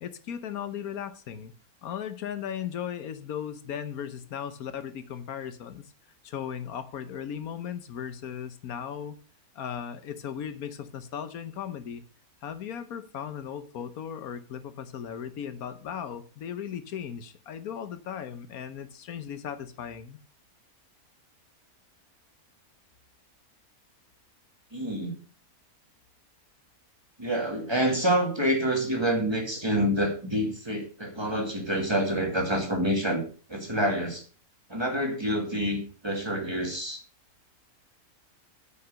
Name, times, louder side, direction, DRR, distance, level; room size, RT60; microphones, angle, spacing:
voice 1, 0.0-1.5 1.8-5.9 6.2-9.2 9.5-12.0 12.4-20.2, left 8 dB, 75° left, 1.3 m, -37 dB
voice 2, 24.7-25.1 27.2-33.2 33.5-34.2 34.7-37.0, equal, 15° right, 2.2 m, -27 dB
9.7 x 5.9 x 6.4 m
omnidirectional pair, 1.6 m